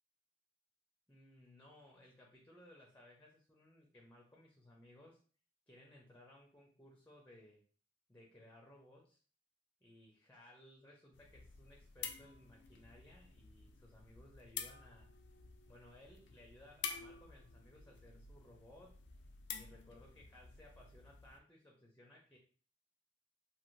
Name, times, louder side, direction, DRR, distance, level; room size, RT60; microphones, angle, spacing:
voice 1, 1.1-5.2 5.7-7.6 8.1-9.2 9.8-15.1 15.7-19.0 19.5-22.4, left 1 dB, 10° left, -1 dB, 0.5 m, -61 dB
sound 1, 11.1-21.4, left 7 dB, 75° left, 0.4 m, -50 dB
2.7 x 2.6 x 3.1 m, 0.41 s
head